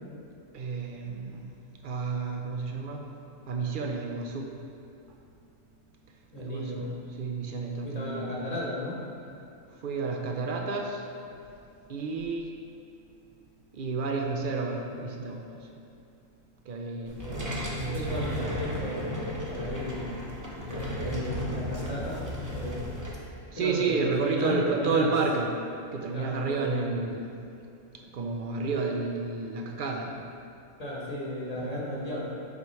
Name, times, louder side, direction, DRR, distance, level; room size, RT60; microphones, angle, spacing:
voice 1, 0.5-1.4 1.8-3.0 3.5-4.5 6.4-6.9 7.2-8.5 9.8-11.0 11.9-12.5 13.7-15.4 16.7-17.2 17.8-18.2 23.5-25.5 25.9-27.3 28.1-30.2 31.6-31.7, right 4 dB, 60° right, 2 dB, 0.5 m, -30 dB
voice 2, 6.3-6.9 7.8-9.0 17.2-19.0 19.5-20.1 20.5-22.2 22.5-22.8 23.5-25.1 26.1-26.9 30.8-32.3, left 1 dB, 35° left, -5 dB, 1.0 m, -35 dB
sound 1, 17.1-23.1, equal, 20° right, 0.7 m, -34 dB
7.3 x 4.7 x 3.1 m, 2.6 s
omnidirectional pair, 1.3 m